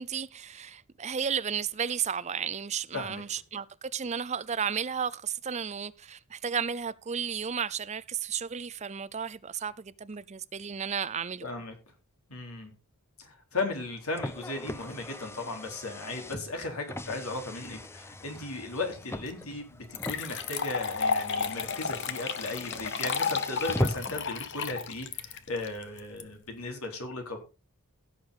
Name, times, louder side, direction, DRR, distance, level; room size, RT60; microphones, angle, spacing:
voice 1, 0.0-11.5, right 7 dB, 30° right, 0.5 m, -33 dB
voice 2, 11.4-11.8 12.3-12.7 13.2-27.4, left 2 dB, 75° left, 4.0 m, -36 dB
Car, 13.7-24.3, left 1 dB, 10° left, 0.6 m, -39 dB
sound 1, 19.3-19.4 19.9-26.2, left 6 dB, 55° left, 1.1 m, -32 dB
16.5 x 7.1 x 4.0 m
head